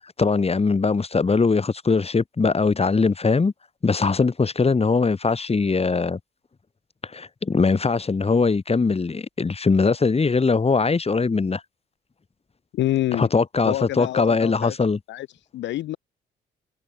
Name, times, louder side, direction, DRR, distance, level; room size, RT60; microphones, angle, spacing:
voice 1, 0.2-3.5 3.8-6.2 7.0-11.6 13.1-15.0, left 4 dB, 30° left, 5.8 m, -21 dB
voice 2, 12.7-13.3 13.6-14.7 15.1-15.3 15.5-16.0, left 14 dB, 60° left, 2.8 m, -26 dB
figure-of-eight pair, 45°, 21 cm